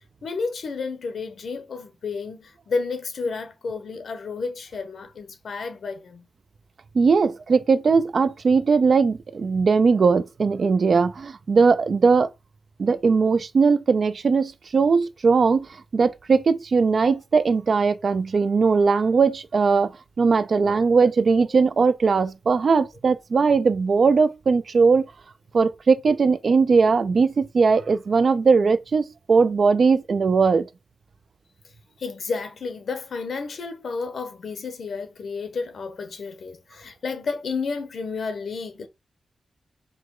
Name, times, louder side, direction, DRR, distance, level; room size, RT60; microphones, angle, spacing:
voice 1, 0.2-6.2 20.7-20.8 24.0-24.1 32.0-38.9, left 4 dB, 70° left, 0.9 m, -31 dB
voice 2, 6.9-12.3 12.8-15.7 15.9-19.9 20.2-25.1 25.5-30.7, right 4 dB, 55° right, 0.4 m, -19 dB
4.7 x 2.2 x 3.7 m
wide cardioid pair, 135°, 0 cm